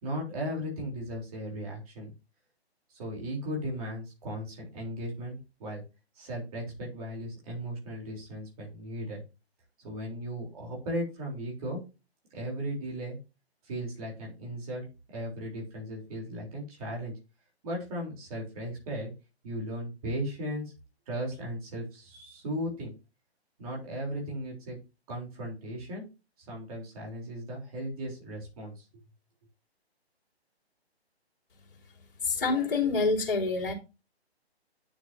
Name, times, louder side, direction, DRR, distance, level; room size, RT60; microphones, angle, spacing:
voice 1, 0.0-2.1 3.0-5.8 6.2-9.2 9.8-11.8 12.3-13.2 13.6-14.8 15.1-17.1 17.6-19.1 19.4-20.7 21.1-22.9 23.6-24.8 25.1-26.1 26.4-28.8, equal, 35° right, -2 dB, 3.9 m, -36 dB
voice 2, 32.2-33.7, left 4 dB, 55° left, -2 dB, 3.7 m, -27 dB
9.6 x 6.9 x 2.8 m, 0.29 s
figure-of-eight pair, 135°, 32 cm